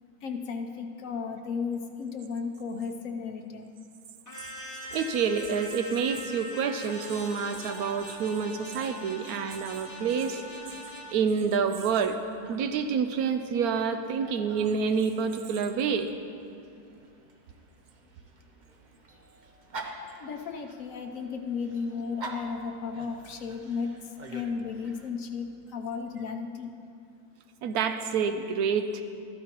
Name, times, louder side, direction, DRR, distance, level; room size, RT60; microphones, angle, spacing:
voice 1, 0.2-3.7 20.2-26.7, left 5 dB, 60° left, 4 dB, 1.1 m, -34 dB
sound 1, 4.3-11.1, left 1 dB, 15° left, 0.9 m, -42 dB
voice 2, 4.9-10.4 11.1-12.2 12.5-16.1 27.6-29.0, right 6 dB, 75° right, 8 dB, 1.0 m, -28 dB
Dog, 6.8-25.1, right 2 dB, 40° right, 0.7 m, -48 dB
13.5 x 13.0 x 3.0 m, 2.5 s
omnidirectional pair, 1.7 m